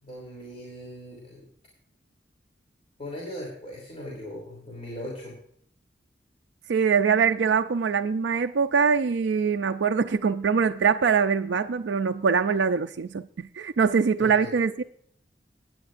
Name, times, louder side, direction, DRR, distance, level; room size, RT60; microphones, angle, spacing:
voice 1, 0.0-1.4 3.0-5.3 14.2-14.5, equal, 35° left, -3 dB, 3.1 m, -39 dB
voice 2, 6.7-14.8, right 6 dB, 80° right, 6 dB, 0.4 m, -23 dB
18.0 x 9.4 x 2.5 m, 0.64 s
head